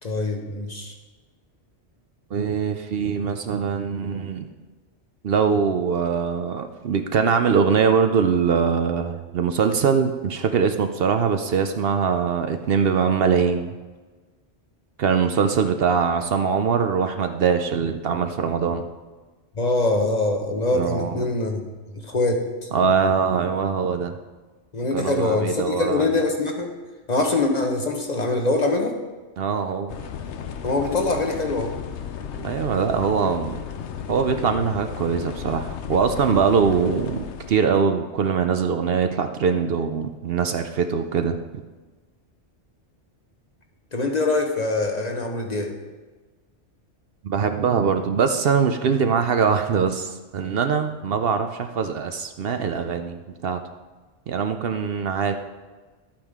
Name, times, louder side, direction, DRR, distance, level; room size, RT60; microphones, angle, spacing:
voice 1, 0.0-0.9 19.6-21.6 22.0-22.7 24.7-26.7 27.1-29.0 30.6-31.7 43.9-45.7, left 2 dB, 40° left, 3 dB, 1.1 m, -23 dB
voice 2, 2.3-4.5 5.2-13.7 15.0-18.9 20.7-21.2 22.7-24.1 24.9-26.1 29.4-30.0 32.4-33.6 34.1-41.6 47.2-53.6 54.3-55.3, right 6 dB, 60° right, 7 dB, 0.8 m, -22 dB
sound 1, 29.9-37.5, left 7 dB, 80° left, 1.0 m, -34 dB
12.0 x 8.8 x 3.6 m, 1.3 s
omnidirectional pair, 1.2 m